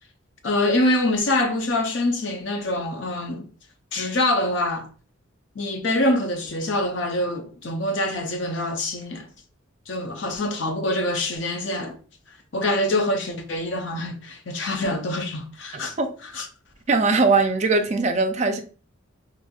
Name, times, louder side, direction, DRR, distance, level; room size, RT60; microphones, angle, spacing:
voice 1, 0.4-3.5 3.9-4.9 5.6-9.3 9.9-12.0 12.5-15.9 16.3-16.5, left 1 dB, 60° left, 0.6 m, -25 dB
voice 2, 15.7-16.1 16.9-18.6, right 3 dB, 35° right, 0.4 m, -20 dB
4.1 x 2.6 x 2.3 m
head